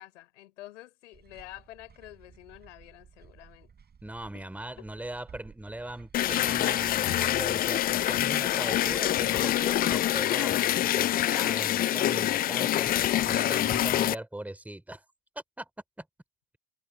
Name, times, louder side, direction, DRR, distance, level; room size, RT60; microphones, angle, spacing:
voice 1, 0.0-3.7 4.3-4.5 4.8-4.9, left 16 dB, 80° left, 4.1 m, -48 dB
sound 1, 1.1-10.2, right 6 dB, 25° right, 7.0 m, -54 dB
voice 2, 4.0-15.0 15.6-15.7 16.0-16.1, right 1 dB, 5° right, 3.2 m, -40 dB
sound 2, 6.1-14.2, left 13 dB, 25° left, 0.4 m, -26 dB
hypercardioid pair, 85°, 36 cm